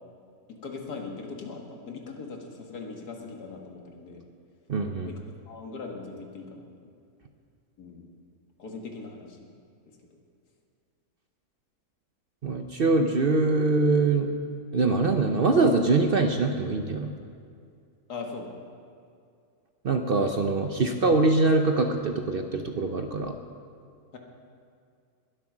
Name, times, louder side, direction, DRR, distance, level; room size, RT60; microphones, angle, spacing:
voice 1, 0.5-4.2 5.0-5.2 5.5-6.7 7.8-8.1 8.6-9.5 18.1-18.6 24.1-24.2, left 4 dB, 90° left, 1 dB, 2.2 m, -40 dB
voice 2, 4.7-5.1 12.4-14.3 14.7-17.1 19.8-23.4, right 3 dB, 50° right, 5 dB, 0.7 m, -23 dB
21.0 x 7.9 x 6.0 m, 2.4 s
omnidirectional pair, 1.6 m